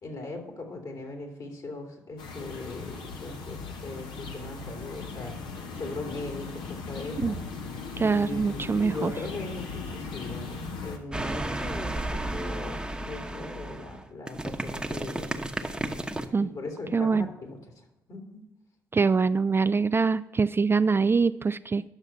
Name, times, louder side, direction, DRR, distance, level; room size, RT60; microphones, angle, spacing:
voice 1, 0.0-5.4 5.7-7.4 8.0-15.4 16.4-18.4, left 2 dB, 55° left, 2 dB, 2.6 m, -39 dB
sound 1, 2.2-11.0, left 4 dB, 70° left, 1.2 m, -38 dB
voice 2, 8.0-9.1 16.3-16.5 16.9-17.3 18.9-21.8, right 4 dB, 30° right, 13 dB, 0.3 m, -24 dB
sound 2, 11.1-16.3, right 1 dB, 10° right, 1.1 m, -33 dB
10.0 x 6.8 x 5.7 m, 0.89 s
hypercardioid pair, 45°, 8 cm